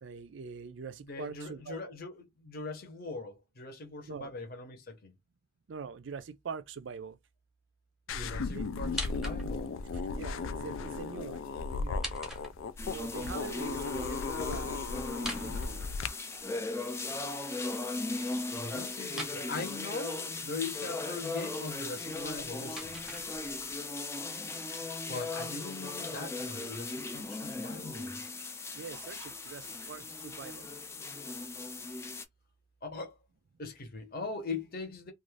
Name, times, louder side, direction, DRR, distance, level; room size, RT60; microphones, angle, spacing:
voice 1, 0.0-1.9 4.1-4.3 5.7-7.2 8.1-8.7 9.9-12.1 12.9-14.2 14.5-14.8 15.1-15.8 28.7-30.7, right 5 dB, 65° right, 0.4 m, -44 dB
voice 2, 1.0-5.1 8.1-9.8 18.5-23.0 25.1-28.2 32.8-33.2 33.6-35.1, left 3 dB, 50° left, 0.8 m, -41 dB
sound 1, 8.1-16.1, left 4 dB, 85° left, 0.3 m, -36 dB
sound 2, 8.8-9.8 11.8-13.0 15.1-16.4 19.1-19.4 22.1-23.8, equal, ahead, 0.8 m, -42 dB
sound 3, 12.8-32.2, left 3 dB, 15° left, 0.3 m, -38 dB
2.5 x 2.4 x 3.2 m
head